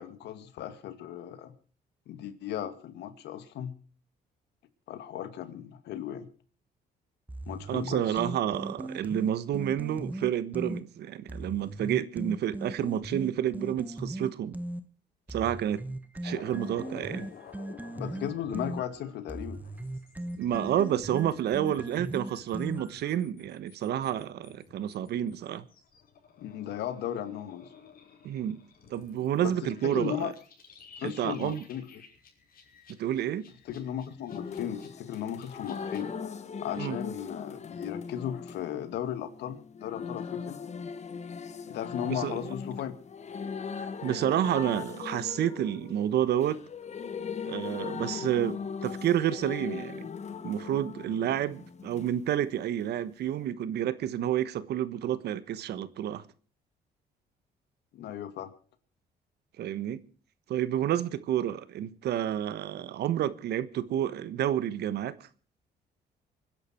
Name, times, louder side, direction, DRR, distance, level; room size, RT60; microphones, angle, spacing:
voice 1, 0.0-1.5 2.1-3.7 4.9-6.3 7.5-8.2 18.0-19.6 26.4-27.7 29.4-30.3 31.0-32.0 33.7-36.1 36.6-40.6 41.7-42.9 57.9-58.5, left 10 dB, 80° left, 2.2 m, -36 dB
sound 1, 7.3-10.8 11.3-14.8 15.3-23.1, right 1 dB, 10° right, 1.3 m, -38 dB
voice 2, 7.7-14.5 15.3-15.8 16.2-17.3 20.4-25.7 28.2-28.6 28.9-30.3 31.0-31.6 33.0-33.5 36.8-37.0 42.0-42.4 43.8-46.6 47.5-50.1 50.4-56.2 59.6-60.0 60.5-65.3, right 11 dB, 70° right, 1.3 m, -30 dB
sound 2, 16.2-36.2, left 7 dB, 60° left, 5.7 m, -53 dB
sound 3, 34.3-52.1 53.4-53.5, left 6 dB, 40° left, 1.4 m, -39 dB
25.0 x 10.5 x 4.5 m
cardioid pair, 90°, 17 cm